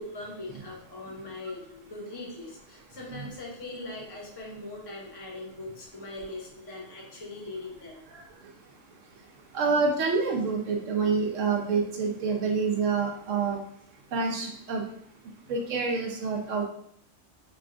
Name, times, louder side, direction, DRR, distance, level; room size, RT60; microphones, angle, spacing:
voice 1, 0.0-8.0, left 2 dB, 25° left, -2 dB, 0.6 m, -40 dB
voice 2, 9.5-13.6 14.1-14.8 15.5-16.6, right 4 dB, 75° right, 1 dB, 1.0 m, -27 dB
4.6 x 2.3 x 2.5 m, 0.69 s
omnidirectional pair, 1.3 m